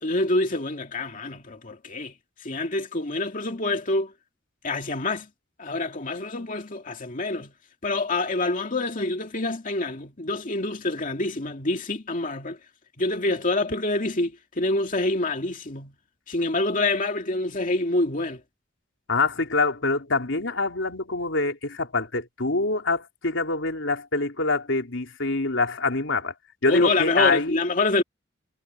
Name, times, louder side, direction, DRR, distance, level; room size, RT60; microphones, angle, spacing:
voice 1, 0.0-2.1 2.4-4.1 4.6-5.3 5.6-7.5 7.8-12.6 13.0-15.9 16.3-18.4 26.7-28.0, left 2 dB, 45° left, 2.4 m, -26 dB
voice 2, 19.1-26.3 26.6-27.6, left 3 dB, 85° left, 3.4 m, -25 dB
head